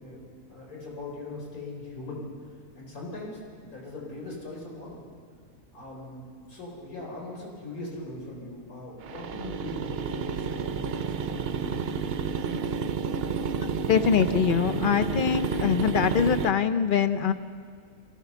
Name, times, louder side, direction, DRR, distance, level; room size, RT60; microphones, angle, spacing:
voice 1, 0.0-2.2 2.7-5.0 5.7-11.9, left 2 dB, 70° left, -3 dB, 4.7 m, -40 dB
sound 1, 9.0-16.5, right 6 dB, 55° right, 0.7 m, -30 dB
voice 2, 13.9-17.3, left 7 dB, 55° left, 10 dB, 0.6 m, -23 dB
23.5 x 16.5 x 6.9 m, 2.1 s
omnidirectional pair, 1.6 m